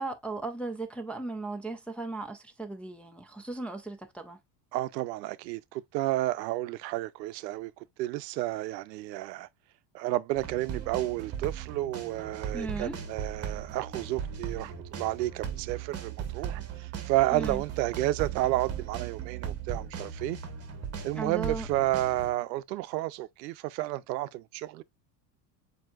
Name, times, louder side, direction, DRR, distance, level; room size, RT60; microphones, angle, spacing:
voice 1, 0.0-4.4 12.5-13.0 17.3-17.6 21.1-21.7, right 3 dB, 5° left, 0.4 m, -36 dB
voice 2, 4.7-7.7 8.0-9.5 9.9-20.4 21.0-24.8, right 16 dB, 85° right, 0.6 m, -31 dB
sound 1, 10.4-22.3, right 8 dB, 30° right, 1.3 m, -38 dB
7.5 x 2.9 x 2.3 m
supercardioid pair, 110°, 50 cm